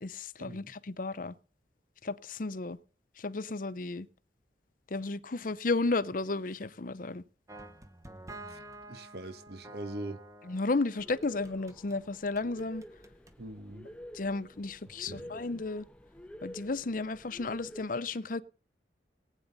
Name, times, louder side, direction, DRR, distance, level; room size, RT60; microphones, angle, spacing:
voice 1, 0.0-1.3 2.0-2.8 3.2-4.1 4.9-7.2 10.5-12.8 14.1-15.8 16.4-18.4, left 3 dB, 50° left, 0.7 m, -33 dB
sound 1, 7.5-12.0 12.4-13.4, right 2 dB, 15° right, 1.0 m, -49 dB
voice 2, 8.9-10.2 13.4-13.9 15.0-15.4, right 1 dB, 60° right, 1.2 m, -42 dB
sound 2, 11.0-17.8, equal, 5° left, 0.7 m, -49 dB
19.5 x 9.3 x 4.1 m
head